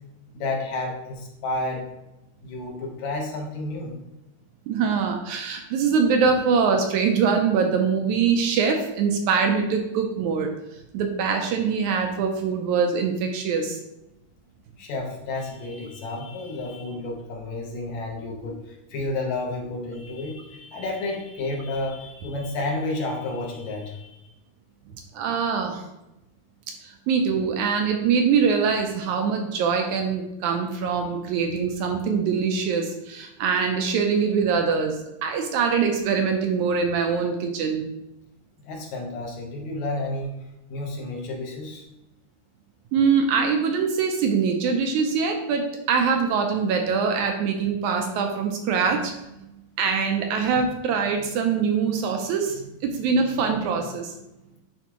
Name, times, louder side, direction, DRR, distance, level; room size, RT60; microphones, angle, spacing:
voice 1, 0.3-1.9 2.4-4.0 14.8-24.3 25.3-25.4 38.6-40.3 40.7-41.8, left 2 dB, 65° left, 0 dB, 2.1 m, -31 dB
voice 2, 4.7-10.5 10.9-13.8 25.1-25.9 26.8-37.8 42.9-49.4 49.8-54.1, right 5 dB, 80° right, 4 dB, 1.8 m, -23 dB
10.0 x 3.5 x 3.0 m, 0.92 s
omnidirectional pair, 3.9 m